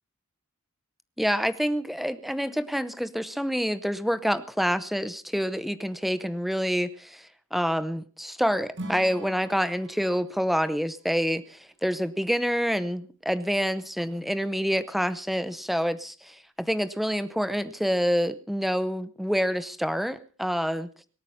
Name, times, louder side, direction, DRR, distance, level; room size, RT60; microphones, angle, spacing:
voice 1, 1.2-20.9, equal, ahead, 14 dB, 0.7 m, -27 dB
Acoustic guitar / Strum, 8.7-12.0, right 1 dB, 55° right, 2.1 m, -43 dB
24.5 x 8.8 x 5.6 m, 0.41 s
head